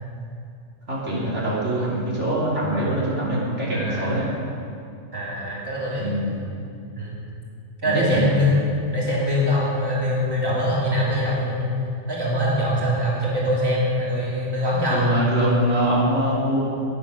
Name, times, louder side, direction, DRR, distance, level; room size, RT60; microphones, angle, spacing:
voice 1, 0.9-4.3 6.0-6.4 7.8-8.3 14.9-16.7, right 1 dB, 70° right, -7 dB, 3.3 m, -23 dB
voice 2, 3.7-4.2 5.1-6.0 7.0-7.1 7.8-8.6 8.9-11.7 12.1-15.0, equal, 20° right, -6 dB, 2.8 m, -23 dB
14.0 x 9.9 x 6.1 m, 2.4 s
omnidirectional pair, 1.3 m